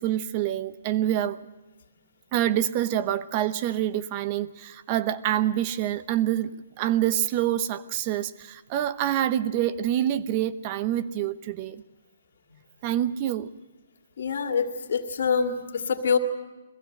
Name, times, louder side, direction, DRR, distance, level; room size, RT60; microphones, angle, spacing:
voice 1, 0.0-1.4 2.3-11.8 12.8-13.5, right 12 dB, 35° right, 13 dB, 0.9 m, -26 dB
voice 2, 14.2-16.2, left 6 dB, 65° left, 4 dB, 2.1 m, -25 dB
22.0 x 15.5 x 7.8 m, 1.1 s
hypercardioid pair, 145°, 0 cm